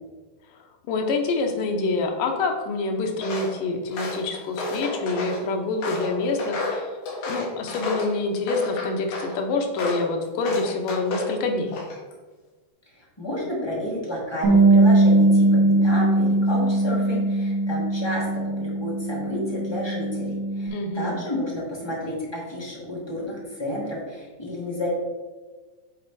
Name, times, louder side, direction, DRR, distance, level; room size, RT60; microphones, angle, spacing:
voice 1, 0.9-7.0 7.3-11.8 20.7-21.2, left 3 dB, 90° left, 4 dB, 2.5 m, -26 dB
Walk footsteps, 3.2-3.5 3.9-5.4 5.8-8.1 8.5-9.3 9.8-10.1 10.4-11.3 11.7-12.1, left 2 dB, 70° left, 2.7 m, -31 dB
voice 2, 12.9-24.9, left 1 dB, 10° left, -5 dB, 1.2 m, -31 dB
Bass guitar, 14.4-20.7, right 2 dB, 60° right, 1.0 m, -20 dB
7.8 x 4.2 x 4.7 m, 1.3 s
omnidirectional pair, 3.7 m